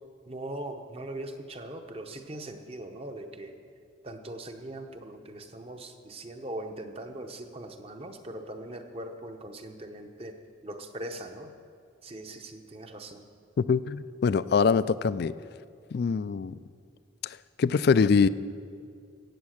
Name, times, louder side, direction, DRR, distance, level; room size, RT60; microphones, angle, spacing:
voice 1, 0.3-3.6 4.0-11.5 12.0-13.2, right 1 dB, 30° right, 6 dB, 0.8 m, -40 dB
voice 2, 13.6-15.3 15.9-16.5 17.2-18.3, left 5 dB, 55° left, 16 dB, 0.3 m, -24 dB
15.5 x 8.4 x 6.5 m, 2.3 s
head